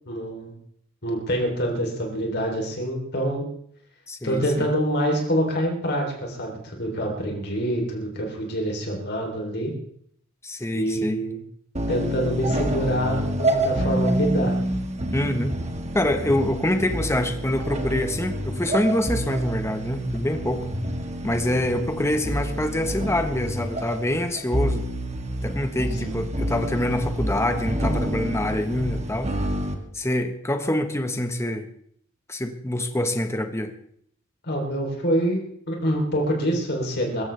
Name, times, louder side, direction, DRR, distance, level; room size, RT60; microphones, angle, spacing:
voice 1, 0.1-0.5 1.0-3.4 4.2-9.7 10.7-11.4 11.9-14.6 34.4-37.2, equal, 55° left, 1 dB, 3.5 m, -26 dB
voice 2, 4.1-4.7 10.4-11.2 15.1-15.5 15.9-20.7 21.2-24.9 25.4-29.3 29.9-31.6 32.3-33.7, left 1 dB, 15° left, 7 dB, 1.3 m, -25 dB
sound 1, 11.7-29.7, right 1 dB, 35° right, 1.8 m, -28 dB
23.5 x 14.5 x 3.4 m, 0.65 s
head